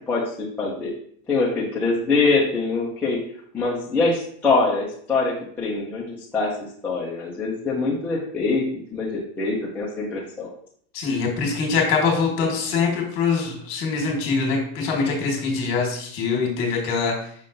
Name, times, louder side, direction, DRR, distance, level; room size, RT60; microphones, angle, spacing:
voice 1, 0.1-0.9 1.3-3.2 3.5-6.5 6.8-8.6 8.9-10.5, left 3 dB, 5° left, -7 dB, 0.4 m, -24 dB
voice 2, 10.9-17.2, left 5 dB, 40° left, 0 dB, 1.4 m, -23 dB
5.5 x 3.5 x 2.6 m, 0.62 s
supercardioid pair, 160°, 34 cm